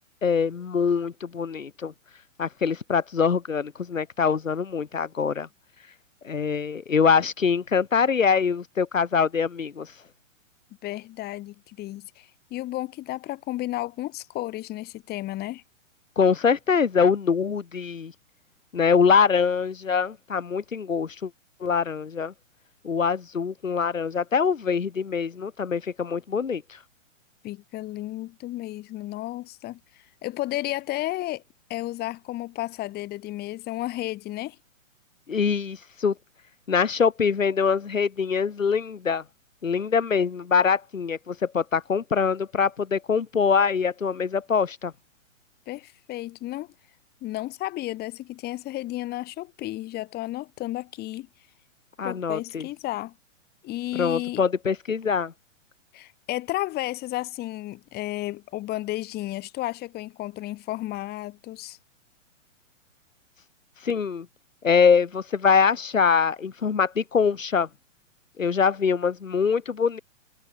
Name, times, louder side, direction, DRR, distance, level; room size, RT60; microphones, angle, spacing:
voice 1, 0.2-1.9 2.4-5.5 6.2-9.9 16.2-18.1 18.7-21.3 21.6-22.3 22.8-26.6 35.3-36.1 36.7-39.2 39.6-44.9 52.0-52.7 53.9-55.3 63.8-64.3 64.6-67.7 68.4-70.0, left 6 dB, 80° left, 3.8 m, -23 dB
voice 2, 10.8-15.6 27.4-31.4 31.7-34.6 45.7-46.7 47.2-51.3 52.0-53.1 53.6-54.4 55.9-61.8, left 16 dB, 25° left, 2.6 m, -33 dB
hypercardioid pair, 120°, 39 cm